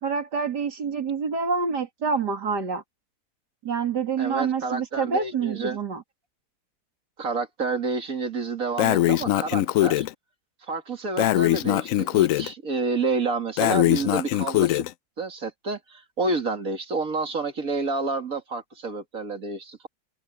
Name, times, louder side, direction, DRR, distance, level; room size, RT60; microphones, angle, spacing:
voice 1, 0.0-2.8 3.6-6.0, right 5 dB, 85° right, 3.2 m, -27 dB
voice 2, 4.2-5.8 7.2-10.1 10.7-14.8 15.2-19.9, right 3 dB, 55° right, 2.6 m, -29 dB
Breathing, 8.8-10.1 11.2-12.5 13.6-14.9, left 14 dB, 70° left, 0.8 m, -22 dB
omnidirectional pair, 1.8 m